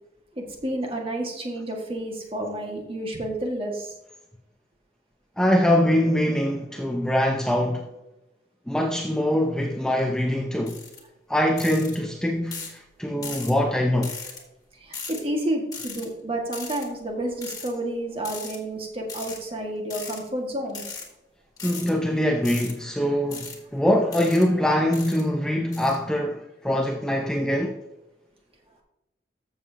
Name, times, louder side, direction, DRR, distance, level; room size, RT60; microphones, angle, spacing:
voice 1, 0.4-3.9 14.7-20.8, right 1 dB, 30° right, 1.9 m, -30 dB
voice 2, 5.4-7.9 8.7-10.8 11.3-14.1 21.6-27.8, left 1 dB, 5° left, 0.6 m, -23 dB
sound 1, 10.7-11.0 11.6-12.0 12.5-12.8 13.2-13.5 14.0-14.4 14.9-15.2 15.7-16.1 16.5-16.9 17.4-17.7 18.2-18.6 19.1-19.4 19.9-20.2 20.7-21.1 21.6-21.9 22.4-22.7 23.3-23.6 24.1-24.5 24.9-25.2 25.7-26.0, left 5 dB, 20° left, 1.8 m, -37 dB
14.0 x 7.1 x 2.9 m
head